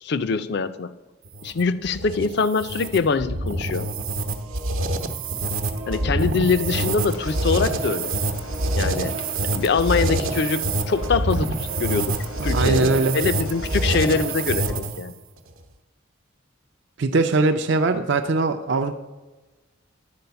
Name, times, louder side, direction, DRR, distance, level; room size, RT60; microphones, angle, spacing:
voice 1, 0.0-0.9 1.4-3.9 5.9-8.1 8.7-9.2 9.4-15.1, left 4 dB, 50° left, 13 dB, 0.4 m, -24 dB
sound 1, 1.2-15.1, right 2 dB, 80° right, 0.9 m, -26 dB
Rain, 6.7-14.5, left 3 dB, 70° left, 0.9 m, -41 dB
voice 2, 12.4-13.2 17.0-18.9, right 3 dB, 55° right, 6 dB, 0.4 m, -21 dB
10.5 x 4.6 x 6.8 m, 1.2 s
head